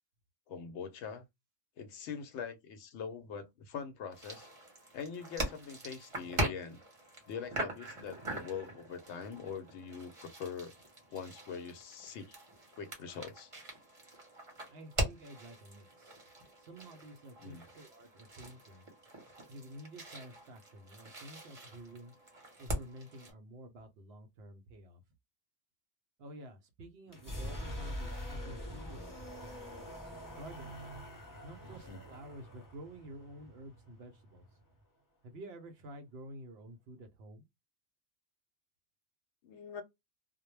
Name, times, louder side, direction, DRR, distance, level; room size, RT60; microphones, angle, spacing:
voice 1, 0.5-1.2 1.8-4.5 4.9-6.8 7.3-10.7 11.1-12.4 12.7-13.5 17.4-17.6 31.9-32.0 39.4-39.8, left 6 dB, 70° left, 0.8 m, -43 dB
sound 1, 4.1-23.3, right 1 dB, 30° right, 0.8 m, -42 dB
voice 2, 14.7-16.3 16.6-18.9 19.5-22.1 22.6-25.0 26.2-29.9 30.4-30.8 31.4-34.5 35.2-37.5, right 1 dB, 65° right, 0.7 m, -50 dB
sound 2, 27.1-34.8, equal, 20° left, 0.6 m, -44 dB
2.1 x 2.1 x 3.1 m
omnidirectional pair, 1.2 m